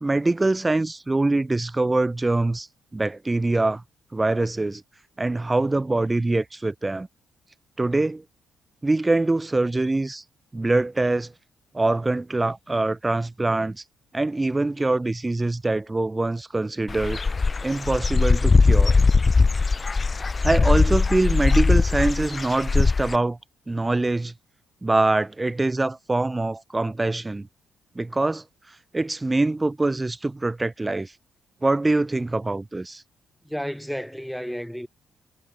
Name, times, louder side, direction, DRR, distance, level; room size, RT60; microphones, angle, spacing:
voice 1, 0.0-2.7 2.9-3.8 4.1-4.8 5.2-7.1 7.8-8.2 8.8-10.2 10.5-11.3 11.7-13.8 14.1-17.2 17.6-19.0 20.4-23.4 23.7-24.3 24.8-27.5 28.0-28.4 28.9-31.1 31.6-33.0, right 2 dB, 15° right, 0.6 m, -24 dB
Dog / Bird, 16.9-23.2, left 4 dB, 30° left, 1.3 m, -20 dB
voice 2, 33.4-34.9, equal, ahead, 3.0 m, -32 dB
cardioid pair, 90°, 0 cm